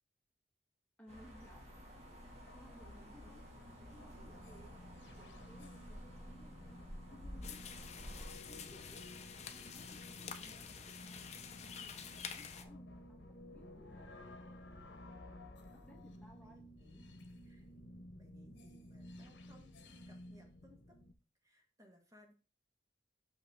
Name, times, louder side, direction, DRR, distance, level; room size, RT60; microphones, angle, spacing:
voice 1, 1.0-1.7 2.2-3.5 3.8-4.9 5.1-6.8 7.1-7.7 8.5-8.8 9.4-14.1 15.6-16.6, equal, 5° left, -1 dB, 1.3 m, -61 dB
sound 1, 1.1-8.3, equal, 35° right, 2.0 m, -52 dB
sound 2, 2.4-21.1, left 1 dB, 75° left, 0.9 m, -55 dB
voice 2, 3.0-3.4 8.7-9.0 16.3-17.0 17.4-17.7 18.1-20.9 21.4-22.3, equal, 20° right, 1 dB, 1.5 m, -64 dB
sound 3, 7.4-12.6, left 7 dB, 35° left, 0.6 m, -49 dB
5.9 x 5.5 x 3.5 m, 0.36 s
head